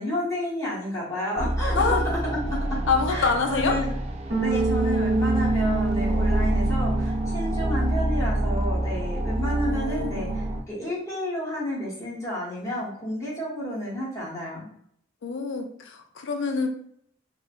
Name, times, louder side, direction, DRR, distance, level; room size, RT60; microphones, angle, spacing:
voice 1, 0.0-2.6 3.1-3.9 4.4-14.7, left 1 dB, 15° left, -7 dB, 1.0 m, -31 dB
sound 1, 1.4-10.6, right 1 dB, 35° right, 0.3 m, -27 dB
voice 2, 2.9-3.8 9.7-10.5 15.2-16.7, left 4 dB, 65° left, 4 dB, 0.4 m, -26 dB
Bass guitar, 4.3-10.6, right 3 dB, 70° right, 1.0 m, -29 dB
3.0 x 2.1 x 2.4 m, 0.66 s
head